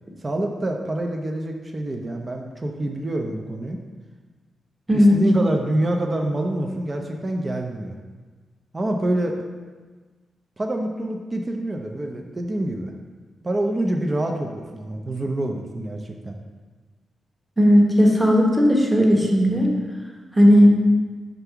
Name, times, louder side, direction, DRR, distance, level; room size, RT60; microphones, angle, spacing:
voice 1, 0.2-3.8 4.9-8.0 8.7-9.4 10.6-12.9 13.4-16.4, right 1 dB, 25° right, 3 dB, 0.5 m, -26 dB
voice 2, 17.6-19.7 20.4-20.8, equal, 5° right, -1 dB, 1.0 m, -15 dB
5.2 x 3.5 x 5.8 m, 1.4 s
cardioid pair, 110°, 0 cm